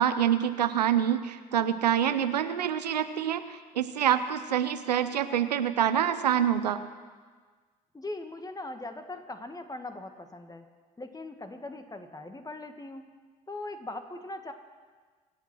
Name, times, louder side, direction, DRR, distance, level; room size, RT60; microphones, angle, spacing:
voice 1, 0.0-6.8, right 9 dB, 90° right, 11 dB, 0.6 m, -26 dB
voice 2, 7.9-10.7 11.0-13.1 13.5-14.5, left 2 dB, 20° left, 7 dB, 1.9 m, -40 dB
25.0 x 8.7 x 6.2 m, 1.5 s
hypercardioid pair, 55°, 20 cm